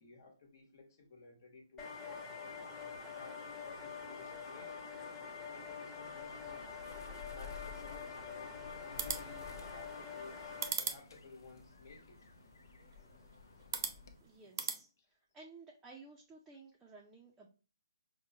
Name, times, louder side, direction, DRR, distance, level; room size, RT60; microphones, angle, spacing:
voice 1, 0.0-1.9 2.5-6.7 7.3-12.2, left 4 dB, 50° left, 1.2 m, -56 dB
sound 1, 1.8-10.7, left 5 dB, 15° left, 1.0 m, -46 dB
Bird, 6.0-14.3, left 6 dB, 70° left, 0.6 m, -54 dB
sound 2, 8.8-14.8, right 6 dB, 55° right, 0.6 m, -43 dB
voice 2, 14.2-14.9 15.3-17.5, right 3 dB, 10° right, 0.5 m, -55 dB
5.2 x 2.2 x 2.7 m
hypercardioid pair, 150°, 2 cm